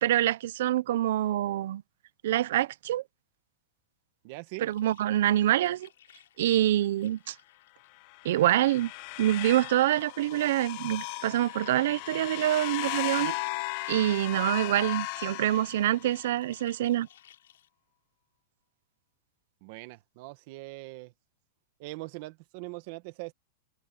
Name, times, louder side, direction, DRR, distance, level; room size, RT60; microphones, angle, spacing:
voice 1, 0.0-1.8 2.2-3.0 4.6-5.9 6.4-7.3 8.2-8.9 9.2-13.3 13.9-17.1, right 13 dB, 65° right, 0.8 m, -26 dB
voice 2, 4.2-4.7 19.6-21.1 21.8-23.3, right 22 dB, 45° right, 1.7 m, -41 dB
sound 1, 4.7-7.9 8.2-9.0 9.5-11.8 12.7-17.7, left 11 dB, 85° left, 6.4 m, -58 dB
sound 2, 8.0-16.3, left 26 dB, 45° left, 0.5 m, -37 dB
supercardioid pair, 160°, 0 cm